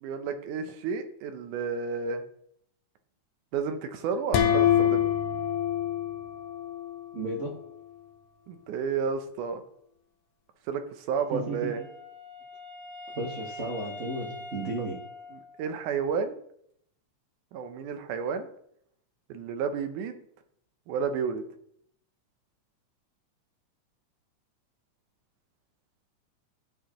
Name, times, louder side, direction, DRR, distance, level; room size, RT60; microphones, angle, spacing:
voice 1, 0.0-2.2 3.5-5.1 8.5-9.6 10.7-11.8 14.8-14.9 15.3-16.4 17.5-18.5 19.3-20.2 20.9-21.4, right 6 dB, 85° right, 8 dB, 2.3 m, -31 dB
sound 1, 4.3-7.1, left 10 dB, 75° left, 2.1 m, -25 dB
voice 2, 7.1-7.5 11.3-11.8 13.1-15.0, right 2 dB, 60° right, -2 dB, 0.7 m, -34 dB
Wind instrument woodwind instrument, 11.1-15.9, left 1 dB, 35° right, 1.1 m, -44 dB
13.0 x 4.5 x 3.0 m, 0.68 s
omnidirectional pair, 3.5 m